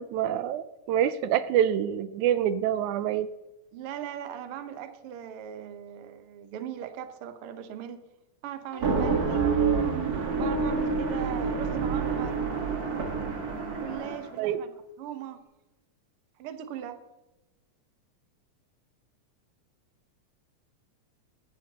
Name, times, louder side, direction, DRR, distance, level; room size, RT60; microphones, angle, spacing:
voice 1, 0.0-3.3 14.4-14.6, right 10 dB, 85° right, 14 dB, 2.0 m, -26 dB
voice 2, 3.7-8.0 8.4-9.5 10.3-12.4 13.8-14.7 15.0-15.4 16.4-17.0, right 10 dB, 65° right, 9 dB, 1.5 m, -39 dB
sound 1, 8.7-14.4, right 5 dB, 40° right, 1.5 m, -28 dB
sound 2, 10.4-12.6, left 5 dB, 70° left, 2.0 m, -35 dB
16.5 x 11.0 x 2.9 m, 1.0 s
omnidirectional pair, 3.4 m